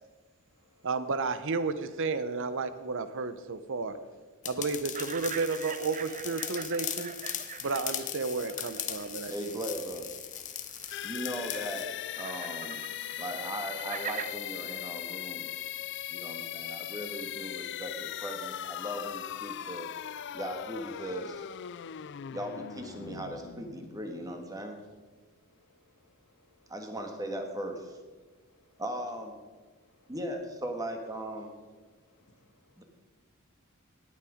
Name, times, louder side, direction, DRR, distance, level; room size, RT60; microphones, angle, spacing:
voice 1, 0.8-4.0 4.4-7.1 7.6-9.5, right 4 dB, 60° right, 12 dB, 0.8 m, -32 dB
sound 1, 4.4-11.9, left 10 dB, 35° left, 0.8 m, -39 dB
sound 2, 4.9-14.3, right 8 dB, 35° right, 0.4 m, -44 dB
voice 2, 9.3-10.1 11.0-12.9 13.2-15.5 16.1-19.9 20.3-21.4 22.3-24.8 26.7-28.0 28.8-29.3 30.1-31.5 32.8-32.9, equal, 15° right, 4 dB, 1.6 m, -38 dB
sound 3, 10.9-24.6, left 11 dB, 55° left, 0.4 m, -39 dB
voice 3, 25.5-26.6 28.5-28.6 32.2-32.4, left 2 dB, 85° left, 2 dB, 2.4 m, -67 dB
18.0 x 8.6 x 5.1 m, 1.4 s
head